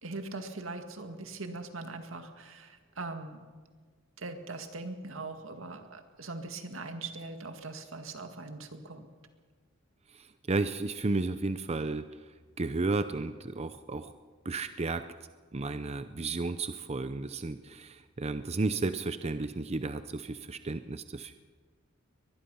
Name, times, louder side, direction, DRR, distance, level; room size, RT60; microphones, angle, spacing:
voice 1, 0.0-3.5 4.2-9.1, right 3 dB, 85° right, 6 dB, 2.0 m, -41 dB
voice 2, 10.1-12.3 12.6-14.1 14.4-15.0 15.5-21.3, right 3 dB, 30° right, 11 dB, 0.6 m, -33 dB
23.0 x 20.5 x 5.6 m, 1.5 s
head